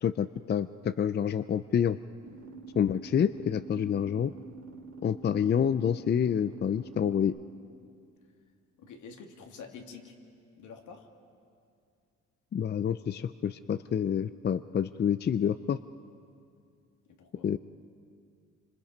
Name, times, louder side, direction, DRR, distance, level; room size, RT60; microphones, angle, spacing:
voice 1, 0.0-2.0 2.8-4.3 5.0-7.4 12.5-15.8 17.4-17.6, left 8 dB, 35° left, 13 dB, 0.5 m, -28 dB
sound 1, 2.2-7.2, right 3 dB, 55° right, 3.2 m, -46 dB
voice 2, 8.8-10.1 10.6-11.1 17.1-17.5, left 5 dB, 75° left, 3 dB, 2.4 m, -47 dB
28.0 x 25.5 x 5.4 m, 2.3 s
cardioid pair, 90°, 30 cm